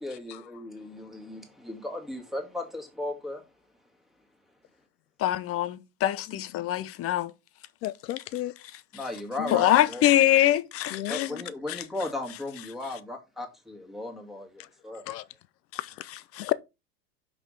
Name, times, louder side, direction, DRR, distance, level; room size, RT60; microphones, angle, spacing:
voice 1, 0.0-3.4 8.9-10.0 11.1-15.0, left 2 dB, ahead, 2.0 m, -36 dB
voice 2, 5.2-7.3 9.5-11.3 11.7-11.8 16.3-16.5, left 13 dB, 30° left, 0.7 m, -24 dB
voice 3, 6.3-6.7 7.8-8.5 9.4-9.6 10.9-11.4 15.1-15.2 16.4-16.5, left 15 dB, 80° left, 0.6 m, -33 dB
6.1 x 5.0 x 4.9 m
hypercardioid pair, 90°, 49 cm